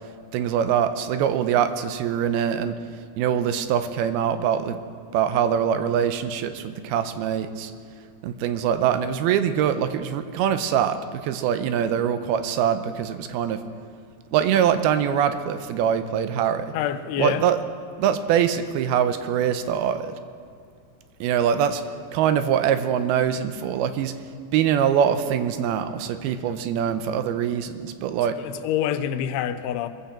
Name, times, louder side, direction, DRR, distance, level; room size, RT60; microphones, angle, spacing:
voice 1, 0.3-2.8 3.2-4.8 5.1-7.7 8.2-13.6 14.3-16.7 17.2-17.6 18.0-20.2 21.2-21.8 22.1-24.1 24.5-28.4, right 9 dB, 85° right, 10 dB, 2.7 m, -23 dB
voice 2, 16.7-17.5 28.4-29.9, left 10 dB, 90° left, 11 dB, 2.8 m, -26 dB
21.5 x 15.0 x 4.4 m, 2.3 s
omnidirectional pair, 4.5 m